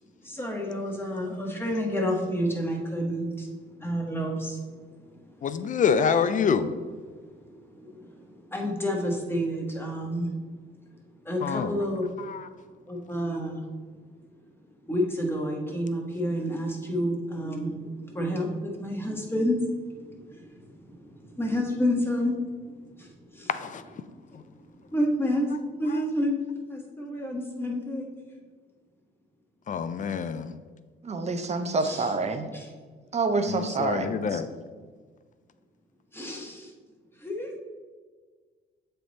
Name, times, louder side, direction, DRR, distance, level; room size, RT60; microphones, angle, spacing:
voice 1, 0.4-3.5 3.8-4.6 5.0-5.2 7.2-10.3 11.2-12.0 12.9-13.7 14.9-22.6 22.9-23.5 24.3-26.4 26.7-28.1 31.8-32.1 32.5-32.6 36.1-36.7 37.2-37.5, equal, 10° left, 0 dB, 1.2 m, -30 dB
voice 2, 5.4-6.7 11.4-11.8 12.2-12.5 23.5-23.8 25.9-26.0 29.7-30.5 33.5-34.5, left 6 dB, 40° left, 12 dB, 0.4 m, -26 dB
voice 3, 31.0-32.5 33.1-34.4, right 3 dB, 35° right, 7 dB, 0.7 m, -27 dB
7.4 x 3.3 x 4.0 m, 1.5 s
cardioid pair, 90°, 20 cm